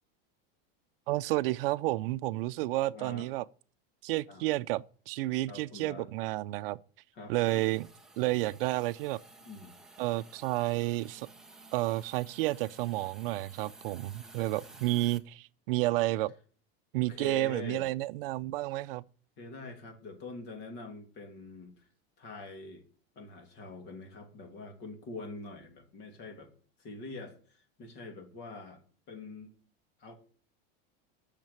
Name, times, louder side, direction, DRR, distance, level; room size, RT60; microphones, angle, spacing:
voice 1, 1.1-3.4 4.0-6.8 7.3-7.9 8.2-9.2 10.0-11.3 11.7-16.3 16.9-19.0, right 18 dB, 65° right, 0.5 m, -31 dB
voice 2, 2.9-3.3 4.3-4.4 5.5-6.1 7.1-7.3 9.4-9.8 17.0-17.9 19.4-21.9 22.2-22.8 23.1-26.5 26.8-28.8 29.1-29.5 30.0-30.2, left 3 dB, 35° left, 2.7 m, -45 dB
Hiss, 7.3-15.2, right 3 dB, ahead, 0.6 m, -54 dB
10.5 x 6.7 x 9.1 m
supercardioid pair, 180°, 30 cm